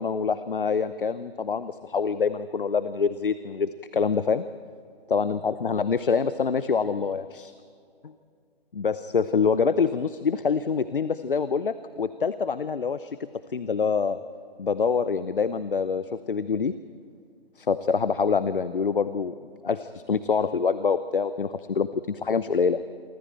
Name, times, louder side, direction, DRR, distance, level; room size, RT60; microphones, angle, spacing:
voice 1, 0.0-4.4 5.1-7.5 8.0-8.1 8.7-13.2 13.5-14.2 14.6-16.7 17.6-19.3 19.6-22.8, left 5 dB, 60° left, 13 dB, 0.8 m, -25 dB
28.0 x 24.0 x 4.5 m, 2.3 s
figure-of-eight pair, 140°, 31 cm